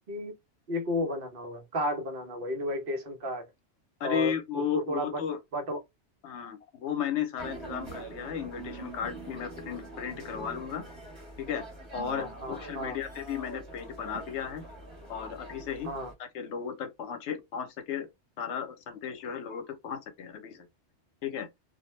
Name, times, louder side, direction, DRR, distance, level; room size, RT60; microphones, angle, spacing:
voice 1, 0.7-3.5 4.0-5.2 5.5-5.8 12.1-13.0 15.8-16.1, left 1 dB, 55° right, 0.9 m, -33 dB
voice 2, 4.0-5.4 6.2-10.9 11.4-11.6 11.9-14.6 15.1-15.9 16.2-18.1 18.4-20.7 21.2-21.5, left 8 dB, 80° left, 0.9 m, -34 dB
sound 1, 7.4-16.1, right 2 dB, 25° right, 1.2 m, -44 dB
2.4 x 2.1 x 3.0 m
omnidirectional pair, 1.2 m